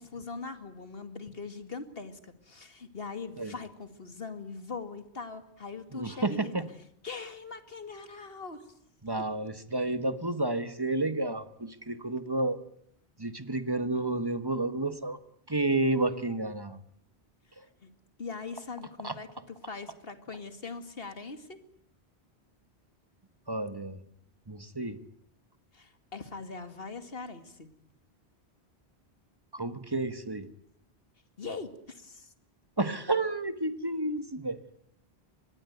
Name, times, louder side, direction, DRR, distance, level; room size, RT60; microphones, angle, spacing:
voice 1, 0.1-6.5 7.0-8.6 17.8-17.9 18.2-21.6 25.7-27.7 31.4-32.3, left 4 dB, 60° left, 9 dB, 2.3 m, -41 dB
voice 2, 5.9-6.7 9.0-12.6 13.2-15.2 15.5-16.8 17.6-17.7 19.0-19.2 23.5-24.0 24.5-25.0 29.5-30.5 32.8-34.6, right 2 dB, 20° right, 11 dB, 1.4 m, -31 dB
24.5 x 20.5 x 9.3 m, 0.69 s
omnidirectional pair, 1.1 m